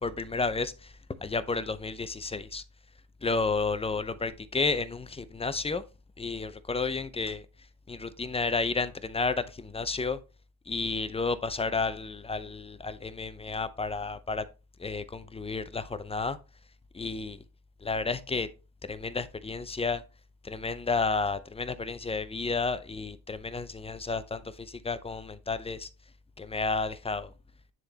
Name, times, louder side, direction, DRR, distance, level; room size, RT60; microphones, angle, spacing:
voice 1, 0.0-0.7 1.2-2.6 3.2-5.8 6.2-7.4 7.9-10.2 10.7-14.4 14.8-16.4 16.9-17.4 17.8-18.5 18.9-20.0 20.4-25.9 26.4-27.3, left 4 dB, 15° left, 0.5 m, -31 dB
9.9 x 3.8 x 2.8 m
cardioid pair, 90°, 43 cm